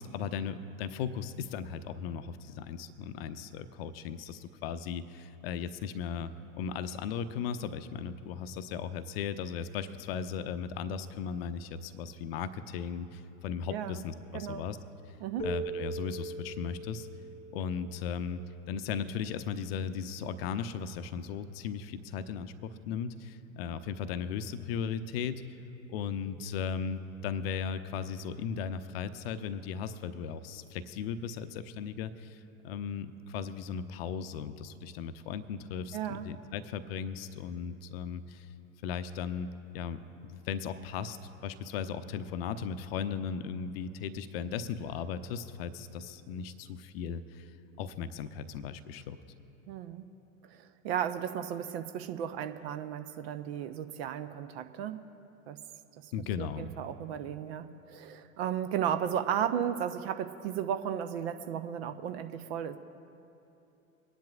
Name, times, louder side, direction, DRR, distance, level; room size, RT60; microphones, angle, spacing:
voice 1, 0.0-6.3 6.6-14.8 15.4-17.1 17.5-18.4 18.7-25.5 25.9-38.5 38.8-39.5 39.7-41.2 41.4-47.5 47.8-49.2 56.1-56.7, left 7 dB, 45° left, 11 dB, 0.7 m, -37 dB
voice 2, 13.7-14.0 14.3-14.7 15.2-15.5 35.9-36.3 49.7-50.0 50.5-55.0 55.5-55.6 56.0-56.1 56.4-62.8, right 9 dB, 50° right, 9 dB, 0.7 m, -34 dB
Keyboard (musical), 15.4-18.6, right 3 dB, 20° left, 1.2 m, -40 dB
24.5 x 10.5 x 2.4 m, 2.8 s
figure-of-eight pair, 85°, 40 cm